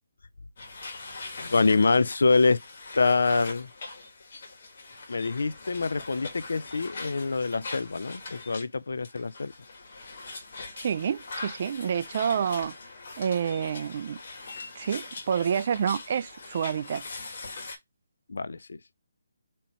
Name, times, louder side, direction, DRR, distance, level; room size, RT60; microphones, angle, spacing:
sound 1, 0.6-8.7 9.0-17.8, left 3 dB, 45° left, 1.5 m, -42 dB
voice 1, 1.5-2.6 2.9-3.7 5.1-9.5 18.3-18.8, left 4 dB, 75° left, 0.4 m, -25 dB
voice 2, 10.8-12.7 13.2-14.2 14.8-17.0, right 7 dB, 40° right, 0.4 m, -28 dB
4.2 x 3.0 x 4.2 m
hypercardioid pair, 165°, 0 cm